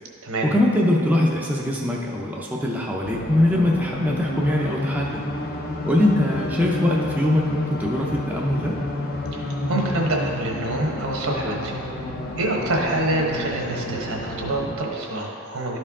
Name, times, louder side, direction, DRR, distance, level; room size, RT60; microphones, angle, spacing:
voice 1, 0.4-5.2 5.8-8.8, left 1 dB, 5° right, -3 dB, 0.5 m, -22 dB
sound 1, 3.0-14.7, left 1 dB, 40° left, 0.6 m, -30 dB
voice 2, 9.3-11.7 12.4-15.8, right 1 dB, 70° right, -1 dB, 1.2 m, -26 dB
12.0 x 4.5 x 3.6 m, 2.6 s
head